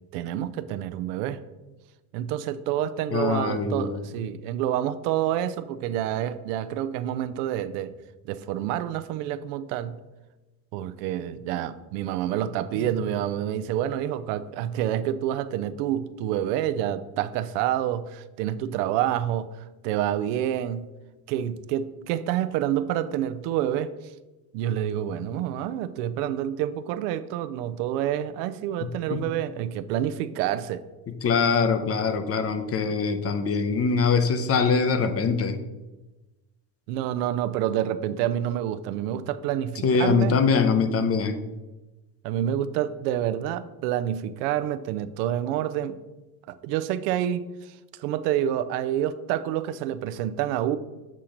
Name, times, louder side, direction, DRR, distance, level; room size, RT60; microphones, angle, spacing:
voice 1, 0.1-1.4 2.1-7.9 8.2-10.0 10.7-20.9 21.3-23.9 24.5-30.8 36.9-40.4 42.2-46.0 46.6-50.8, right 11 dB, 85° right, 13 dB, 0.5 m, -28 dB
voice 2, 3.1-4.0 12.7-12.9 29.1-29.2 31.2-35.6 39.8-41.4, left 5 dB, 30° left, 9 dB, 0.6 m, -23 dB
7.4 x 2.9 x 4.9 m, 1.1 s
supercardioid pair, 110°, 45 cm